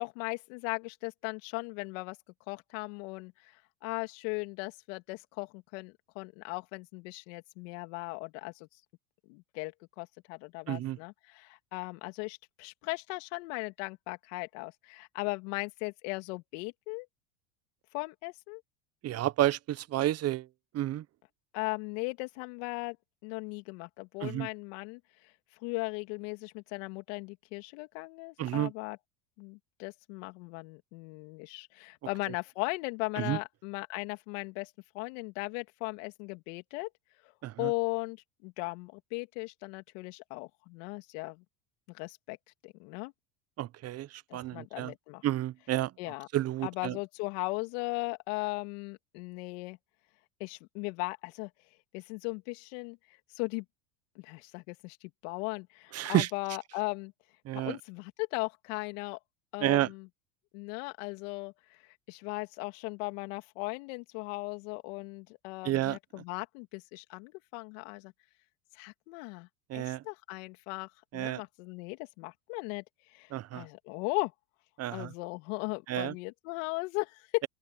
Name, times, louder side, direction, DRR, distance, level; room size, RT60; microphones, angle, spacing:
voice 1, 0.0-2.2 2.5-8.7 9.3-17.1 17.9-18.6 21.5-23.0 23.2-25.3 25.6-29.0 29.4-36.9 37.2-37.3 37.6-41.4 41.9-42.4 42.6-43.1 44.3-45.2 46.0-46.3 46.6-49.8 50.4-51.5 51.9-53.0 53.3-53.6 54.1-57.1 57.5-59.2 59.5-60.1 60.5-68.1 68.7-74.3 74.9-77.4, left 28 dB, 65° left, 3.1 m, -38 dB
voice 2, 10.7-11.0 19.0-20.5 20.7-21.0 24.2-24.5 28.4-28.7 33.2-33.4 37.4-37.7 43.6-44.9 45.2-45.9 46.3-46.9 55.9-56.3 57.5-57.8 59.6-59.9 65.6-66.0 69.7-70.0 71.1-71.4 73.3-73.6 74.8-75.1 75.9-76.1, right 14 dB, 40° right, 0.9 m, -30 dB
open air
hypercardioid pair, 100°, 40 cm